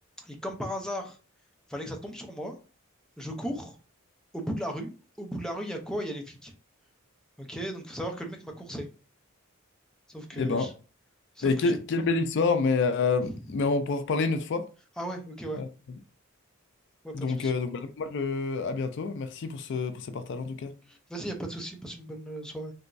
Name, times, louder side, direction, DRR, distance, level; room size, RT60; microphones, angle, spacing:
voice 1, 0.2-1.2 1.7-2.5 3.2-3.8 4.3-4.9 5.2-6.5 7.4-8.9 10.1-10.7 11.4-11.8 13.2-13.3 15.0-15.6 17.0-17.5 20.9-22.7, equal, 5° left, 0.5 m, -36 dB
voice 2, 10.4-10.7 11.4-14.7 15.5-15.7 17.1-20.7, left 4 dB, 55° left, 0.4 m, -28 dB
3.3 x 2.9 x 2.6 m
head